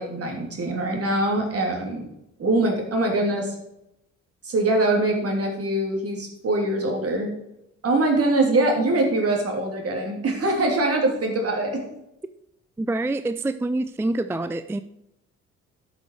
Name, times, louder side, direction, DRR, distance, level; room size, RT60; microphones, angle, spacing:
voice 1, 0.0-2.0 2.4-3.6 4.4-7.3 7.8-11.8, right 2 dB, 50° right, 1 dB, 3.1 m, -23 dB
voice 2, 12.8-14.8, right 2 dB, 10° right, 12 dB, 0.4 m, -26 dB
12.0 x 6.3 x 4.7 m, 0.83 s
cardioid pair, 90°, 30 cm